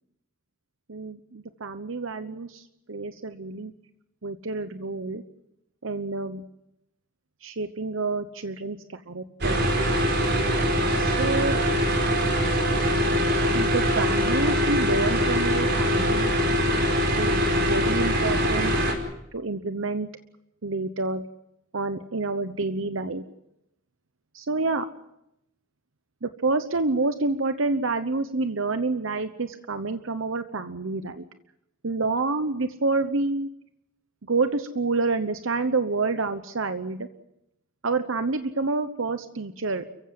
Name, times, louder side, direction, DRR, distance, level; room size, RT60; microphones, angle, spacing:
voice 1, 0.9-3.7 4.2-5.2 5.8-6.4 7.4-9.7 10.9-11.6 13.5-16.3 17.2-18.7 19.3-20.1 20.6-21.2 21.7-23.2 24.3-24.8 26.2-31.2 31.8-33.5 34.2-37.1 37.8-39.8, right 3 dB, 75° right, 10 dB, 1.0 m, -28 dB
sound 1, 9.4-18.9, equal, 55° right, 5.0 m, -23 dB
29.5 x 15.5 x 7.7 m, 0.85 s
head